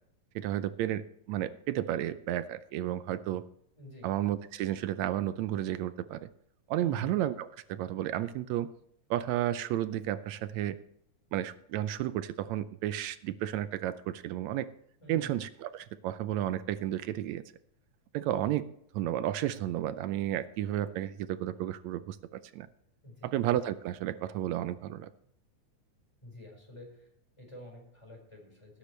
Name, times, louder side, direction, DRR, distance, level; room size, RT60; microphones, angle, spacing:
voice 1, 0.3-3.4 4.0-6.3 6.7-8.7 9.1-10.8 11.3-14.7 15.1-17.4 18.1-18.7 18.9-22.7 23.2-25.1, right 12 dB, 80° right, 13 dB, 1.7 m, -32 dB
voice 2, 3.8-4.1 6.8-7.1 15.0-15.3 23.0-23.4 26.2-27.1 27.4-28.8, left 1 dB, 10° left, 0 dB, 4.7 m, -48 dB
19.0 x 10.0 x 3.2 m, 0.69 s
omnidirectional pair, 3.5 m